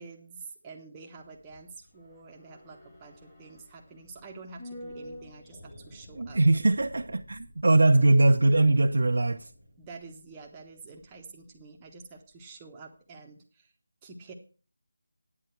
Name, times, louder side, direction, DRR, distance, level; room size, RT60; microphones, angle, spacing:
voice 1, 0.0-6.4 7.7-7.8 9.8-13.7 14.0-14.3, right 4 dB, 10° right, 1.1 m, -48 dB
sound 1, 1.2-11.6 11.9-12.0, equal, 15° left, 2.0 m, -50 dB
voice 2, 6.2-9.4, right 2 dB, 70° right, 0.8 m, -21 dB
9.9 x 9.4 x 4.5 m
figure-of-eight pair, 175°, 0 cm